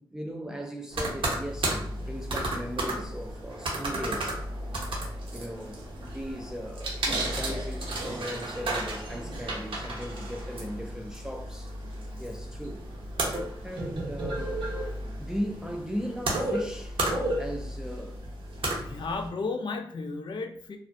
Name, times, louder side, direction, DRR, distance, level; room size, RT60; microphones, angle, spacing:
voice 1, 0.0-4.4 5.3-11.7 12.2-12.9 13.6-14.6 15.2-17.0 17.4-18.2, equal, 5° right, 0.4 m, -37 dB
sound 1, 0.9-19.3, right 1 dB, 75° right, 0.7 m, -33 dB
voice 2, 18.8-20.8, left 3 dB, 55° left, 0.4 m, -33 dB
2.4 x 2.1 x 2.6 m
supercardioid pair, 45°, 9 cm